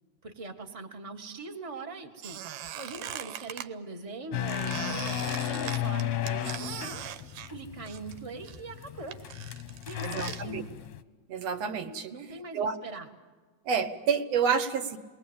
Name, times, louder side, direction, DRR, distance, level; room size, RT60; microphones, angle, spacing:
voice 1, 0.2-2.4 2.7-7.0 7.5-9.2 9.8-10.7 12.1-13.1, right 3 dB, 35° right, 4 dB, 0.5 m, -42 dB
Squeak, 2.2-3.7 4.5-8.2 8.4-10.4, right 11 dB, 90° right, 2.5 m, -40 dB
sound 1, 4.3-11.0, left 10 dB, 70° left, 1.5 m, -34 dB
voice 2, 10.0-10.6 11.3-12.1 12.5-12.8 13.7-15.0, right 6 dB, 65° right, 9 dB, 2.0 m, -29 dB
29.0 x 21.0 x 8.8 m, 1.5 s
omnidirectional pair, 3.6 m